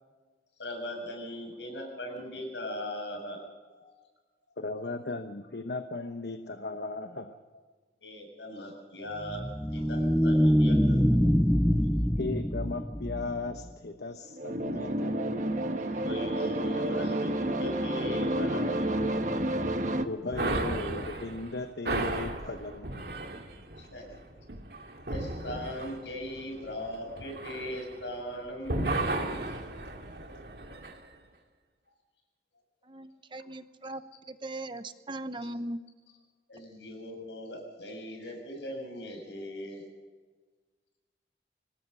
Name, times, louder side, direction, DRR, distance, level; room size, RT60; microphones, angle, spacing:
voice 1, 0.6-3.4 3.7-3.9 8.0-11.0 15.9-19.0 20.0-20.4 23.7-24.2 25.0-29.0 29.4-30.4 36.5-39.9, left 1 dB, 90° left, 2 dB, 7.0 m, -39 dB
voice 2, 4.6-7.4 11.7-11.8 12.1-15.1 20.0-23.1, left 3 dB, 70° left, 7 dB, 1.0 m, -36 dB
sound 1, 9.2-13.7, equal, 5° left, 0.5 m, -25 dB
sound 2, 14.3-20.1, right 1 dB, 45° right, 1.2 m, -30 dB
sound 3, 20.3-28.3 28.6-31.0, right 2 dB, 60° right, 2.2 m, -35 dB
voice 3, 32.8-34.0 34.3-35.8, right 1 dB, 25° right, 10 dB, 0.9 m, -39 dB
25.5 x 19.5 x 5.6 m, 1.4 s
head